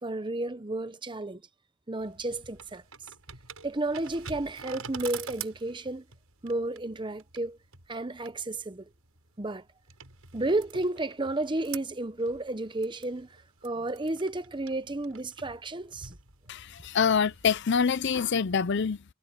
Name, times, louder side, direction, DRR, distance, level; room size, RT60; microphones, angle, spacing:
voice 1, 0.0-1.4 1.9-2.8 3.6-6.0 6.4-7.6 7.9-8.9 9.4-9.6 10.3-13.3 13.6-16.2, right 2 dB, 20° right, 0.8 m, -32 dB
sound 1, 2.0-17.7, right 6 dB, 90° right, 6.7 m, -47 dB
voice 2, 16.5-19.0, left 6 dB, 55° left, 0.6 m, -26 dB
head